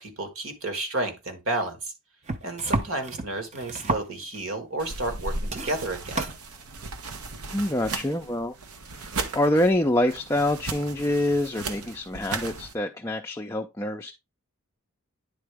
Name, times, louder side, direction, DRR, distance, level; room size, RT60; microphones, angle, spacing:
voice 1, 0.0-1.9 2.4-6.2, right 2 dB, 65° right, 1.7 m, -31 dB
sound 1, 2.3-4.5 5.0-5.2 5.4-6.4 7.4-7.5, right 2 dB, 30° right, 0.6 m, -31 dB
sound 2, 4.8-12.7, right 3 dB, 85° right, 0.9 m, -36 dB
voice 2, 7.5-8.5 9.0-14.1, left 1 dB, 15° left, 0.4 m, -26 dB
10.0 x 3.9 x 3.4 m
head